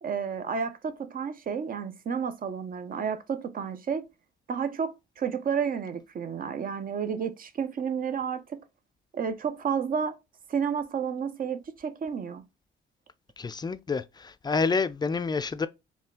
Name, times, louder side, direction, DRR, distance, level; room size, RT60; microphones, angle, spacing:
voice 1, 0.0-4.1 4.5-8.6 9.1-10.2 10.5-12.4, right 7 dB, 45° right, 0.6 m, -31 dB
voice 2, 13.4-15.7, left 4 dB, 20° left, 0.4 m, -28 dB
4.2 x 2.3 x 3.6 m
cardioid pair, 90°, 20 cm